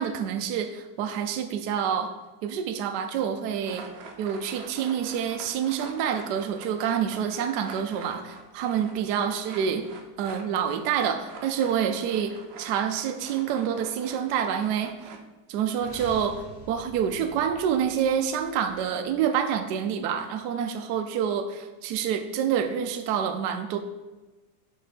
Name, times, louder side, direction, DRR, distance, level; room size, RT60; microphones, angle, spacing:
voice 1, 0.0-2.1 2.4-3.8 4.2-9.8 10.2-15.1 15.5-23.8, right 8 dB, 75° right, 7 dB, 1.1 m, -27 dB
sound 1, 3.5-15.2, right 4 dB, 55° right, 0.7 m, -45 dB
sound 2, 15.7-19.6, left 1 dB, 75° left, 2.1 m, -47 dB
6.8 x 4.3 x 4.9 m, 1.2 s
omnidirectional pair, 1.8 m